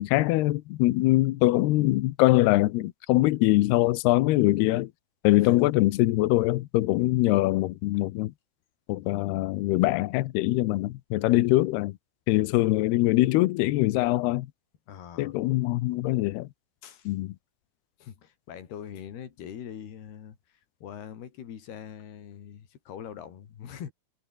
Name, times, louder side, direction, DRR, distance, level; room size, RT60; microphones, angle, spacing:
voice 1, 0.0-4.9 5.2-8.3 8.9-11.9 12.3-14.5 15.2-16.5 17.1-17.3, left 17 dB, 85° left, 2.3 m, -23 dB
voice 2, 14.9-15.3 16.8-17.1 18.0-23.9, left 9 dB, 55° left, 4.5 m, -43 dB
omnidirectional pair, 5.9 m